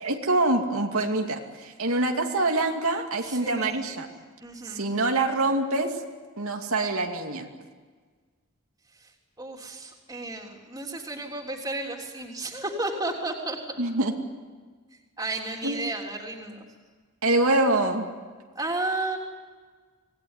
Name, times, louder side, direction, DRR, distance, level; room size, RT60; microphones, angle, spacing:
voice 1, 0.0-4.1 4.6-6.0 6.4-7.5 13.8-14.1 15.6-15.9 17.2-18.0, right 2 dB, 80° right, 2 dB, 2.5 m, -25 dB
voice 2, 3.2-3.9 4.4-4.9 9.0-9.1 9.4-13.6 15.2-16.7 18.5-19.2, right 2 dB, 15° right, 1 dB, 3.3 m, -33 dB
26.0 x 19.0 x 9.7 m, 1.5 s
head